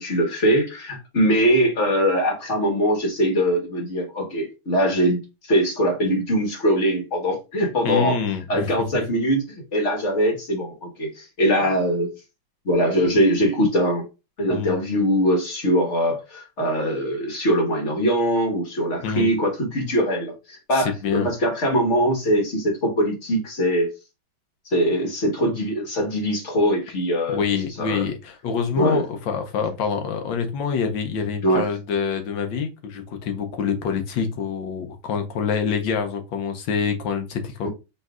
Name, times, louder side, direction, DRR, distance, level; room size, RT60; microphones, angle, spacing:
voice 1, 0.0-8.2 8.5-12.1 12.6-14.0 14.4-23.9 24.7-27.4 27.8-28.1 28.8-29.0 31.4-31.7 37.6-37.7, equal, 40° left, 1.4 m, -22 dB
voice 2, 7.8-8.7 14.5-14.8 19.0-19.3 20.7-21.3 27.3-37.7, left 6 dB, 75° left, 1.4 m, -26 dB
5.3 x 3.1 x 2.4 m
omnidirectional pair, 2.2 m